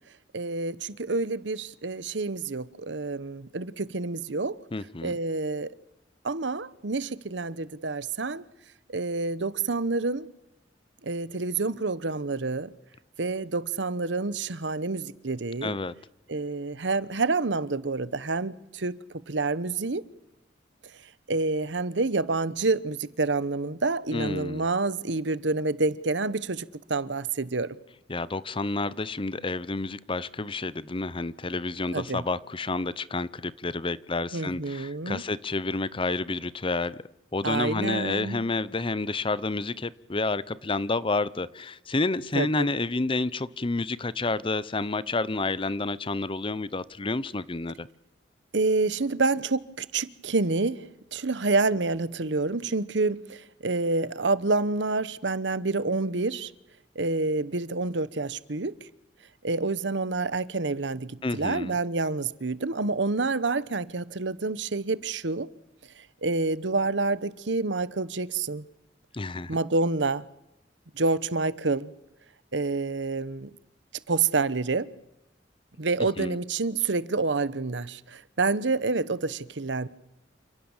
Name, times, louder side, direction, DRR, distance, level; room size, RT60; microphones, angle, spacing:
voice 1, 0.3-4.5 5.0-5.7 6.2-8.4 8.9-10.3 11.0-12.7 13.2-15.8 16.3-19.0 19.3-20.0 21.3-27.8 31.9-32.2 34.3-35.2 37.4-38.4 42.3-42.7 48.5-50.8 51.1-56.5 56.9-58.7 59.4-65.5 66.2-68.6 69.5-70.3 70.9-71.9 72.5-73.5 74.1-74.9 75.8-79.9, right 3 dB, 80° right, 1.0 m, -28 dB
voice 2, 4.7-5.1 15.6-15.9 24.1-24.7 28.1-37.0 37.3-47.9 61.2-61.7 69.1-69.6 76.2-76.4, left 3 dB, 30° left, 0.8 m, -29 dB
28.5 x 17.0 x 7.3 m
head